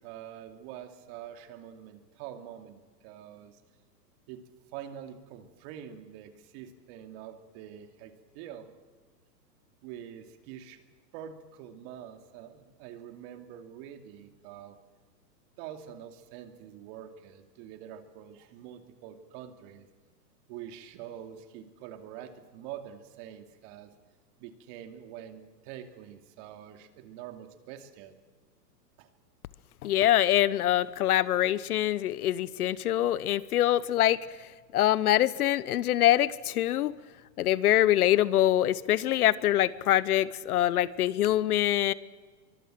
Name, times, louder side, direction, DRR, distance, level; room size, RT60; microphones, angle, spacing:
voice 1, 0.0-3.6 4.3-8.7 9.8-10.8 11.1-14.8 15.6-19.9 20.5-23.9 24.4-28.2 29.0-29.1, right 10 dB, 40° right, 8 dB, 2.5 m, -45 dB
voice 2, 29.8-34.2 34.7-36.9 37.4-41.9, left 13 dB, 60° left, 19 dB, 1.0 m, -24 dB
24.0 x 23.0 x 7.6 m, 1.4 s
hypercardioid pair, 135°, 50 cm